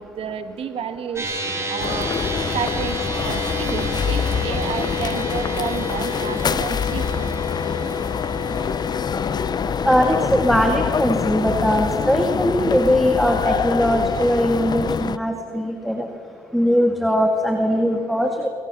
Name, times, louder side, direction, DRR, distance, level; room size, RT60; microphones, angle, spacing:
voice 1, 0.0-2.1 2.5-3.0 3.2-7.3 11.4-11.5, right 7 dB, 65° right, 9 dB, 2.0 m, -31 dB
sound 1, 1.2-13.7, left 1 dB, 25° right, 7.5 m, -31 dB
sound 2, 1.8-15.2, left 6 dB, 40° left, 0.7 m, -25 dB
voice 2, 9.8-16.1 16.5-18.5, equal, ahead, 3 dB, 2.2 m, -20 dB
26.5 x 24.5 x 7.0 m, 2.6 s
cardioid pair, 95°, 11 cm